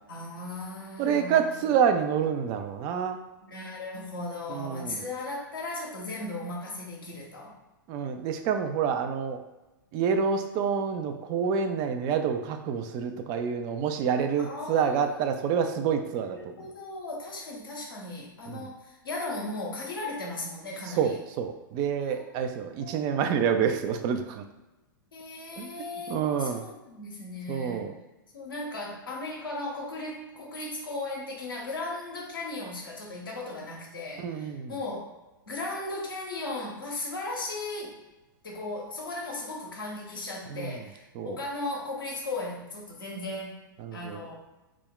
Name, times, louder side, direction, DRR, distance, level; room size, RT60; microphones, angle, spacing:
voice 1, 0.1-1.7 3.4-7.5 14.4-21.2 22.1-22.3 22.8-22.9 25.1-27.9 28.3-35.1 35.5-38.0 38.4-43.6 43.9-44.3, left 2 dB, 80° left, -3 dB, 0.7 m, -37 dB
voice 2, 1.0-3.2 4.5-5.1 7.9-9.4 9.9-16.4 18.5-18.7 21.0-24.4 25.6-25.7 26.1-26.6 27.5-27.9 34.2-34.7 40.5-40.8 41.2-41.4 43.8-44.2, right 7 dB, 35° right, 7 dB, 0.3 m, -28 dB
2.3 x 2.1 x 3.7 m, 1.1 s
figure-of-eight pair, 100°, 11 cm